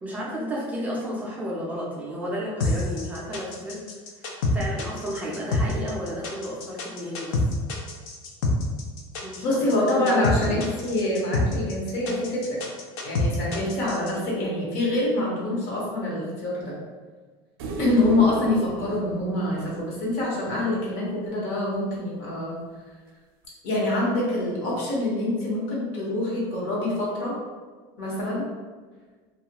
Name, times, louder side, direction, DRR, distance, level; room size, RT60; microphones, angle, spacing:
voice 1, 0.0-3.8 4.2-7.4 9.2-10.6, equal, 15° right, -5 dB, 0.3 m, -32 dB
sound 1, 2.6-14.1, left 3 dB, 80° left, 0.5 m, -27 dB
voice 2, 9.4-12.6 13.0-16.7 17.8-22.6 23.6-27.3 28.0-28.5, left 1 dB, 65° left, -5 dB, 1.0 m, -25 dB
sound 2, 17.6-20.9 23.4-23.5, right 3 dB, 85° right, 0.4 m, -36 dB
2.3 x 2.2 x 2.8 m, 1.4 s
cardioid pair, 165°, 12 cm